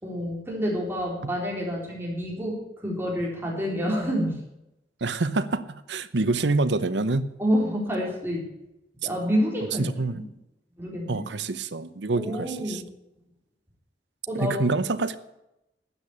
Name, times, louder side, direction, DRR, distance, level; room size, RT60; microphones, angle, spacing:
voice 1, 0.0-2.6 2.8-4.4 7.4-8.5 9.0-9.8 10.1-10.2 10.8-11.2 12.2-12.8 14.3-14.6, equal, 15° right, -3 dB, 4.1 m, -28 dB
voice 2, 5.0-7.3 9.8-10.2 11.1-12.8 14.3-15.2, right 3 dB, 80° right, 13 dB, 0.9 m, -26 dB
12.5 x 8.2 x 8.5 m, 0.90 s
head